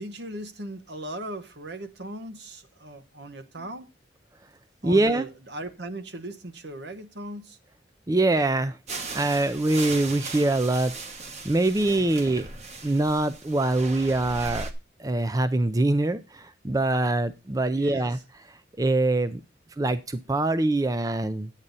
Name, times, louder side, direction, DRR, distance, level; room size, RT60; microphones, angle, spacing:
voice 1, 0.0-3.9 4.8-7.6 17.7-18.1, right 1 dB, 70° right, 1.2 m, -38 dB
voice 2, 4.8-5.3 8.1-8.8 9.1-11.2 11.4-12.5 12.8-14.7 15.0-18.2 18.8-19.4 19.8-21.5, right 2 dB, 20° right, 0.4 m, -24 dB
sound 1, 8.9-14.7, right 3 dB, 35° right, 1.1 m, -38 dB
11.0 x 8.8 x 4.0 m
head